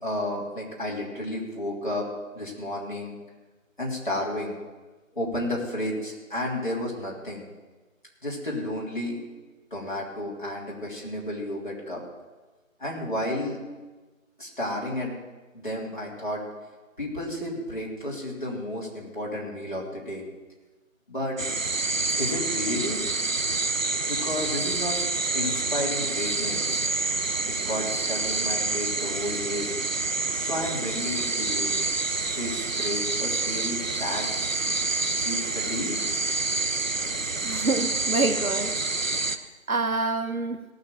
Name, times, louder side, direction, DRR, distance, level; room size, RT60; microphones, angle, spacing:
voice 1, 0.0-2.1 2.3-3.2 3.8-4.6 5.1-7.4 8.2-9.2 9.7-12.0 12.8-13.6 14.4-15.2 15.5-16.4 17.0-20.2 21.1-21.4 22.2-23.0 24.1-25.0 25.3-26.8 27.6-29.7 30.4-31.7 32.4-34.3 35.2-36.0, left 1 dB, 35° left, -4 dB, 3.4 m, -32 dB
sound 1, 21.4-39.4, right 3 dB, 65° right, 1.0 m, -28 dB
voice 2, 37.4-38.8 39.2-40.6, right 3 dB, 90° right, 10 dB, 1.1 m, -28 dB
17.5 x 6.0 x 7.4 m, 1.3 s
figure-of-eight pair, 170°, 41 cm